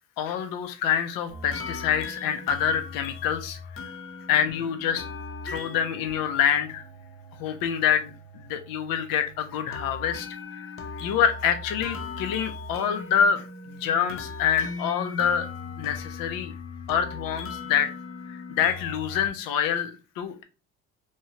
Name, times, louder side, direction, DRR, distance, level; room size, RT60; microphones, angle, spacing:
voice 1, 0.2-3.6 4.3-5.1 5.4-6.8 7.4-10.7 11.0-15.5 15.8-16.5 16.9-17.9 18.5-20.4, left 8 dB, 85° left, 8 dB, 0.6 m, -26 dB
sound 1, 1.3-19.3, left 4 dB, 40° left, 0.6 m, -39 dB
2.9 x 2.3 x 2.9 m, 0.31 s
cardioid pair, 100°, 33 cm